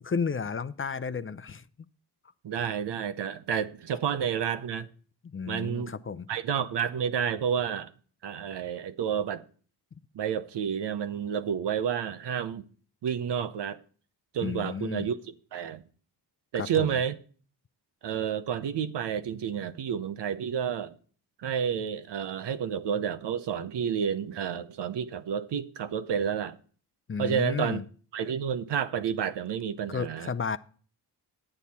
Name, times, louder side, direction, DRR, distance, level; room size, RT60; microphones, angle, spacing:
voice 1, 0.0-1.6 5.3-6.3 14.4-15.1 16.5-16.9 27.1-27.8 29.9-30.6, left 5 dB, 30° left, 0.5 m, -32 dB
voice 2, 2.4-4.9 5.5-6.0 6.3-7.9 8.2-9.4 10.1-12.6 13.0-13.8 14.3-15.8 16.5-17.2 18.0-21.0 21.4-26.6 27.2-27.8 28.1-30.3, right 8 dB, 85° right, 0.8 m, -30 dB
9.8 x 9.1 x 4.2 m
cardioid pair, 70°, 41 cm